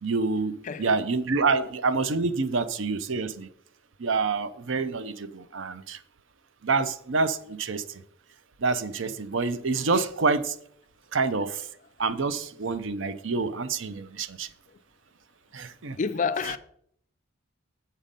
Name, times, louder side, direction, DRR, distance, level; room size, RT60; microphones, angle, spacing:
voice 1, 0.0-3.5 4.0-6.0 6.6-7.8 8.6-10.5 11.1-11.6 12.0-14.5 15.5-16.0, right 4 dB, 65° right, 0.6 m, -27 dB
voice 2, 0.6-1.0 14.7-14.8 16.0-16.6, left 5 dB, 35° left, 0.4 m, -29 dB
7.4 x 5.7 x 5.2 m
head